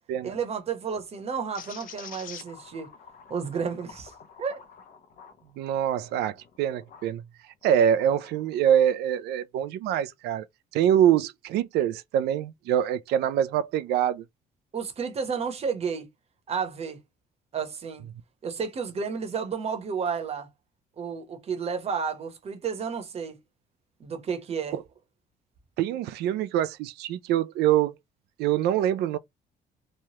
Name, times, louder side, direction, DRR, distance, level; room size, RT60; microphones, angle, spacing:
voice 1, 0.2-2.9 3.3-4.1 4.4-4.6 14.7-16.1 16.5-17.0 17.5-18.1 18.4-20.5 21.0-23.4 24.0-24.8, right 6 dB, 35° right, 0.9 m, -31 dB
sound 1, 1.5-7.1 7.6-8.8, left 7 dB, 55° left, 0.7 m, -48 dB
voice 2, 5.6-7.2 7.6-10.4 10.7-14.2 25.8-27.9 28.4-29.2, right 10 dB, 75° right, 0.4 m, -24 dB
3.1 x 2.2 x 2.8 m
cardioid pair, 110°, 17 cm